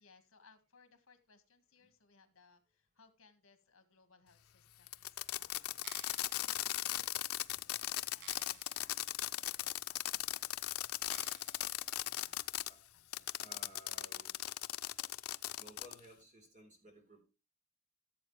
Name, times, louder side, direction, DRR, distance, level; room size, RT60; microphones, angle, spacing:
voice 1, 0.0-7.1 7.5-11.4 12.0-12.4 13.2-13.5, left 4 dB, 65° left, 9 dB, 1.8 m, -67 dB
Fireworks, 4.9-12.7 13.1-16.0, left 14 dB, 90° left, 0.5 m, -38 dB
sound 1, 5.7-6.4 7.1-7.2 7.6-7.7 8.2-8.9 9.3-9.4 10.2-10.3 11.1-11.8 12.3-12.4, right 9 dB, 55° right, 0.7 m, -56 dB
voice 2, 13.4-14.3 15.6-17.2, equal, 35° right, 3 dB, 4.0 m, -57 dB
15.5 x 7.9 x 3.3 m, 0.29 s
head